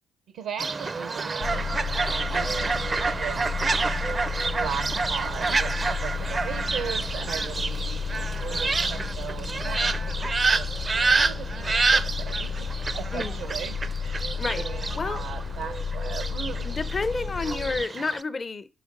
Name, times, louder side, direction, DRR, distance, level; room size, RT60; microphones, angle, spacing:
voice 1, 0.3-3.7 4.5-10.7 11.1-12.7 13.0-16.8, right 8 dB, 85° right, 0.6 m, -38 dB
Fowl, 0.6-18.2, right 4 dB, 35° right, 0.4 m, -28 dB
sound 1, 1.4-17.8, left 5 dB, 75° left, 1.0 m, -32 dB
voice 2, 16.7-18.7, left 3 dB, 30° left, 0.5 m, -30 dB
5.7 x 4.9 x 5.2 m
cardioid pair, 90°, 0 cm